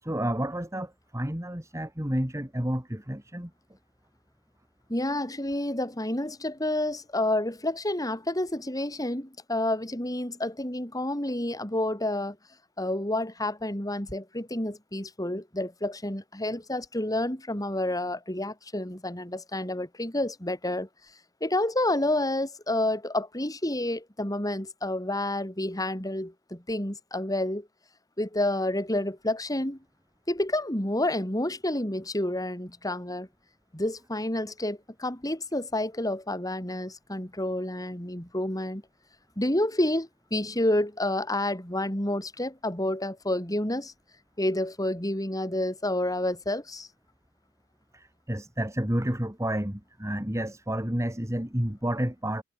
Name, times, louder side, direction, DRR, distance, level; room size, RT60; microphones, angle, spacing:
voice 1, 0.0-3.5 47.9-52.4, right 1 dB, 15° right, 2.4 m, -30 dB
voice 2, 4.9-12.4 12.8-20.9 21.4-27.7 28.2-29.8 30.3-33.3 33.7-38.8 39.4-43.9 44.4-46.9, left 1 dB, 20° left, 4.3 m, -29 dB
head